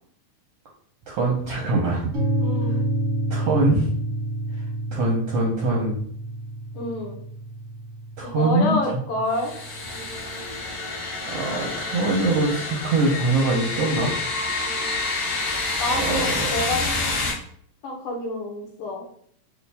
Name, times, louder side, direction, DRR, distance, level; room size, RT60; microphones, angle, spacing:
voice 1, 1.1-2.1 3.3-3.9 4.9-6.0 8.2-8.8 10.9-11.0 11.3-14.1 15.9-16.5, right 2 dB, 75° right, -3 dB, 1.4 m, -23 dB
sound 1, 2.1-10.0, right 1 dB, 55° right, 0.8 m, -29 dB
voice 2, 2.4-2.8 6.7-7.2 8.4-9.5 15.8-17.3 17.8-19.0, left 2 dB, 80° left, 0 dB, 2.4 m, -28 dB
sound 2, 9.3-17.3, left 3 dB, 60° left, 2.3 m, -28 dB
5.7 x 2.3 x 3.4 m, 0.63 s
omnidirectional pair, 3.6 m